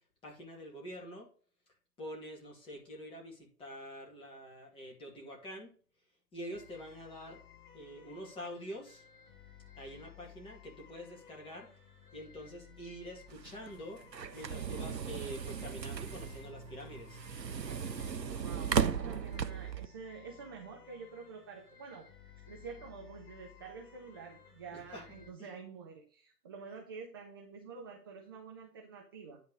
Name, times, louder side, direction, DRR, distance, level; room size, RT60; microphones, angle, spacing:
voice 1, 0.2-1.3 2.0-5.7 6.3-7.4 7.7-9.1 9.8-11.7 12.1-14.0 14.3-17.2 24.7-25.0 25.4-25.5, equal, 10° left, -2 dB, 2.4 m, -46 dB
sound 1, 6.5-25.3, left 8 dB, 30° left, 3.3 m, -57 dB
sound 2, 13.3-19.9, right 7 dB, 85° right, 0.8 m, -36 dB
voice 2, 18.4-22.1 22.5-29.4, right 5 dB, 15° right, 1 dB, 0.6 m, -48 dB
10.5 x 4.0 x 5.3 m, 0.42 s
figure-of-eight pair, 125°, 49 cm